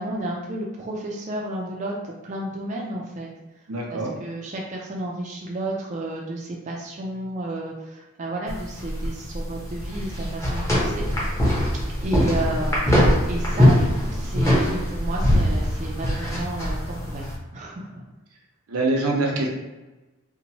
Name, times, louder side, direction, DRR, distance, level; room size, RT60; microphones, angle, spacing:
voice 1, 0.0-3.3 3.9-11.1 12.0-17.3 17.5-18.0, right 1 dB, 35° right, -2 dB, 0.3 m, -32 dB
voice 2, 3.7-4.1 18.7-19.5, right 2 dB, 85° right, 0 dB, 0.6 m, -24 dB
sound 1, 8.5-17.4, equal, 15° left, 0.7 m, -22 dB
2.9 x 2.1 x 2.7 m, 1.1 s
head